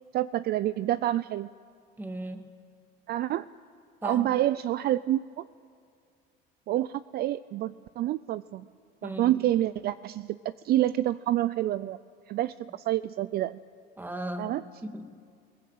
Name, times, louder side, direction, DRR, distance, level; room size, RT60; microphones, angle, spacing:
voice 1, 0.1-1.5 3.1-3.5 4.0-5.4 6.7-8.7 9.0-12.0 12.3-13.6 14.4-14.6, right 13 dB, 50° right, 16 dB, 0.4 m, -28 dB
voice 2, 2.0-2.5 4.0-4.3 9.0-9.4 14.0-14.6 14.8-15.1, right 1 dB, 10° right, 7 dB, 1.8 m, -36 dB
22.0 x 17.5 x 8.6 m, 2.3 s
cardioid pair, 125°, 21 cm